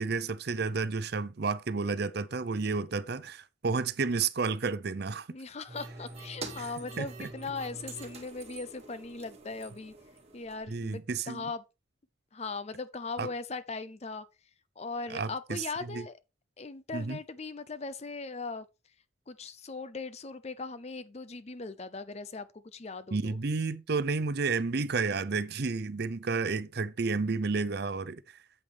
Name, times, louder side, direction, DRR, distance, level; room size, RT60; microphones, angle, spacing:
voice 1, 0.0-5.3 6.6-6.7 7.0-7.3 10.7-11.4 13.2-13.3 15.1-16.0 16.9-17.2 23.1-28.2, right 4 dB, 55° right, 0.6 m, -31 dB
voice 2, 5.3-9.9 10.3-11.6 12.3-14.3 14.8-16.2 16.6-18.7 19.3-23.4, left 3 dB, 35° left, 0.5 m, -39 dB
sound 1, 5.7-10.7, right 3 dB, 30° right, 1.9 m, -45 dB
8.6 x 8.0 x 3.4 m
head